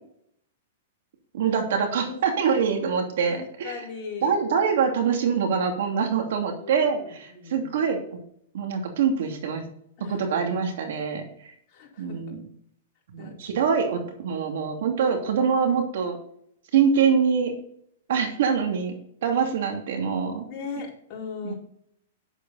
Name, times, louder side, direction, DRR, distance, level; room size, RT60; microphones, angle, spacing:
voice 1, 1.3-3.7 4.2-8.0 8.5-9.6 10.1-11.5 12.0-12.4 13.1-16.2 16.7-17.5 18.1-18.9 19.2-20.5 21.4-21.5, right 6 dB, 70° right, 4 dB, 2.7 m, -24 dB
voice 2, 3.2-4.4 6.6-7.8 10.0-10.2 11.7-12.2 13.2-13.3 20.4-21.5, left 5 dB, 35° left, -3 dB, 4.6 m, -38 dB
10.0 x 8.4 x 4.2 m, 0.68 s
hypercardioid pair, 145°, 0 cm